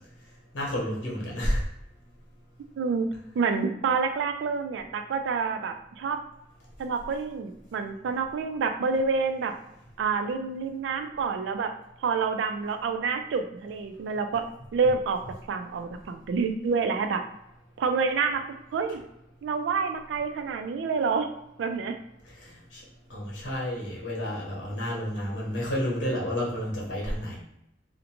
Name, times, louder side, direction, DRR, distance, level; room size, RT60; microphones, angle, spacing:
voice 1, 0.5-1.6 22.3-22.8 23.1-27.4, equal, 90° left, -4 dB, 1.0 m, -30 dB
voice 2, 2.8-3.1 3.4-6.2 6.8-9.5 10.0-11.7 12.0-14.4 14.7-15.2 15.5-17.2 17.8-18.4 18.7-19.0 19.4-21.3 21.6-22.0, right 5 dB, 75° right, 7 dB, 0.3 m, -28 dB
2.5 x 2.1 x 2.9 m, 0.82 s
head